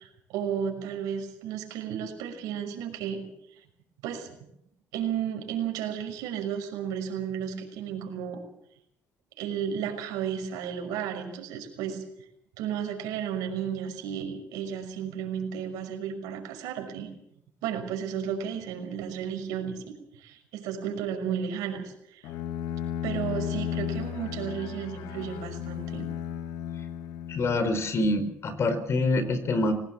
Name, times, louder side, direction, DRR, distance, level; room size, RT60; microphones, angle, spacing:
voice 1, 0.0-3.3 4.0-4.3 4.9-8.4 9.4-12.0 12.6-17.1 17.6-19.9 20.2-22.3 23.0-26.1, right 8 dB, 85° right, 5 dB, 5.9 m, -33 dB
Bowed string instrument, 22.2-28.1, left 9 dB, 80° left, 1.4 m, -34 dB
voice 2, 27.3-29.7, left 2 dB, 50° left, 11 dB, 4.8 m, -26 dB
21.5 x 18.5 x 7.5 m, 0.77 s
supercardioid pair, 80°, 6 cm